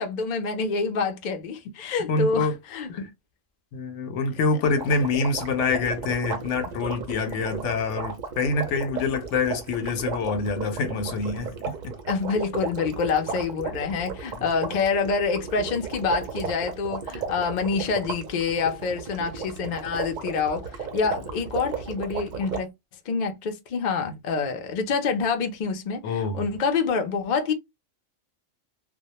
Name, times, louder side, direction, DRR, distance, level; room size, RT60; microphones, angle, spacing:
voice 1, 0.0-2.9 12.1-22.7 23.1-27.5, left 5 dB, 55° left, 0.5 m, -27 dB
voice 2, 1.8-2.6 2.9-3.0 3.7-11.9 26.0-26.4, left 4 dB, 75° left, 0.9 m, -26 dB
sound 1, 4.8-22.6, right 5 dB, 55° right, 0.5 m, -34 dB
2.2 x 2.1 x 2.8 m
omnidirectional pair, 1.3 m